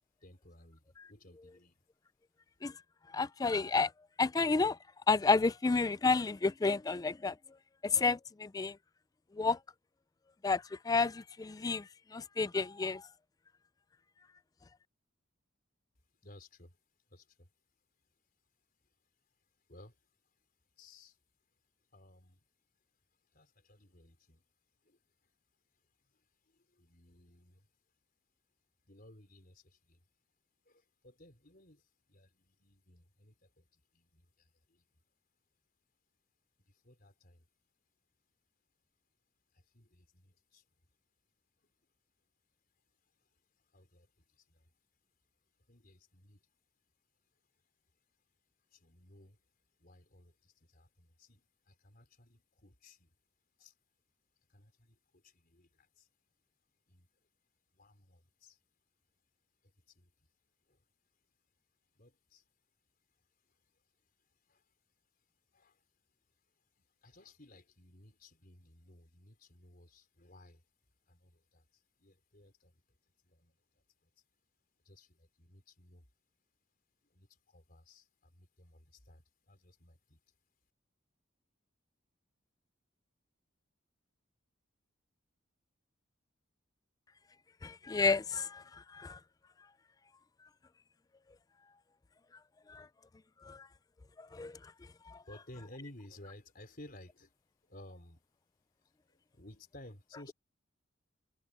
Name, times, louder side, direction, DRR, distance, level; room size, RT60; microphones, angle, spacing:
voice 1, 0.2-1.8 16.2-16.8 17.1-17.5 19.7-20.0 20.8-21.2 21.9-22.4 23.3-24.4 24.8-25.0 26.1-27.7 28.9-30.0 30.6-34.8 36.7-37.5 39.5-40.6 43.7-44.7 45.7-46.4 48.7-49.4 49.8-53.1 53.6-53.7 54.5-56.1 56.9-57.1 57.7-58.6 59.6-60.1 60.7-60.8 61.9-62.4 63.5-63.6 64.5-64.6 65.5-65.8 66.8-70.6 71.1-72.8 73.2-73.5 74.0-74.1 74.8-76.1 77.1-80.2 95.3-97.3 97.7-98.2 99.1-100.3, left 1 dB, 45° left, 4.6 m, -58 dB
voice 2, 3.1-3.9 4.2-4.8 5.1-7.4 7.8-8.8 9.3-9.6 10.4-13.1 87.6-89.2 92.7-92.9 93.4-93.7 94.2-94.7 95.1-95.2, left 4 dB, 20° left, 0.3 m, -31 dB
head